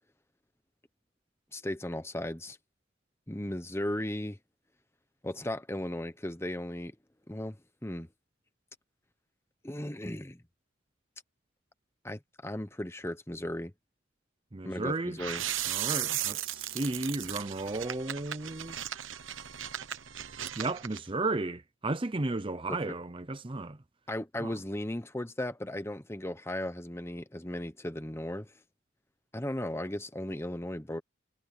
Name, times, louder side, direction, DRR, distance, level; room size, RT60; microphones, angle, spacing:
voice 1, 1.5-2.6 3.3-4.4 5.2-7.0 7.3-7.6 7.8-8.1 9.6-10.4 12.0-13.7 14.6-15.4 22.7-22.8 24.1-28.5 29.3-31.0, left 1 dB, 15° left, 1.1 m, -36 dB
voice 2, 14.5-15.2 15.7-18.8 20.5-23.8 24.4-24.5, right 2 dB, 25° right, 0.7 m, -34 dB
sound 1, 15.2-21.0, right 11 dB, 75° right, 1.1 m, -36 dB
head